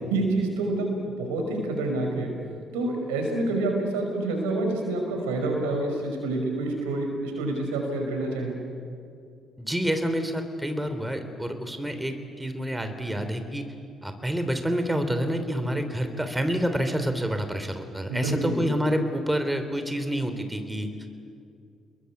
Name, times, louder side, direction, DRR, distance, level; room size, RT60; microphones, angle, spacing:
voice 1, 0.0-2.3 2.7-8.6 18.1-18.7, right 2 dB, 75° right, 3 dB, 5.4 m, -27 dB
voice 2, 9.6-13.7 14.0-20.9, equal, 10° right, 7 dB, 3.5 m, -28 dB
29.5 x 22.0 x 8.4 m, 2.4 s
hypercardioid pair, 45°, 0 cm